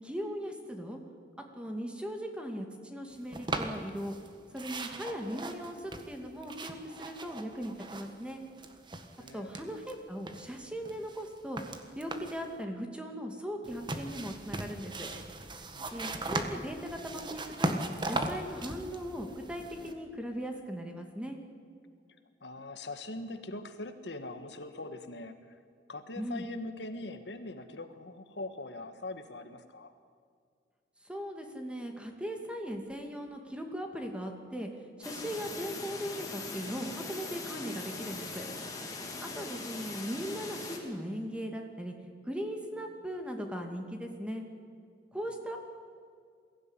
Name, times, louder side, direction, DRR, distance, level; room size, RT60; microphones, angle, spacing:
voice 1, 0.0-1.0 1.6-4.1 4.5-8.4 9.3-11.6 12.0-15.1 15.9-17.7 18.1-21.4 26.2-26.5 31.0-34.7 35.0-38.4 39.2-41.9 42.2-44.5 45.1-45.6, equal, 5° right, 3 dB, 2.3 m, -39 dB
sound 1, 3.3-4.3 4.5-8.3 8.6-9.9 10.3-12.5 13.6-19.9, right 2 dB, 25° right, 1.6 m, -38 dB
voice 2, 9.2-9.6 15.7-15.9 22.4-25.6 25.9-29.9 39.2-39.5, left 2 dB, 75° left, 8 dB, 1.6 m, -42 dB
sound 2, 35.0-40.8, left 3 dB, 20° left, 3.3 m, -41 dB
22.0 x 16.0 x 9.9 m, 2.1 s
head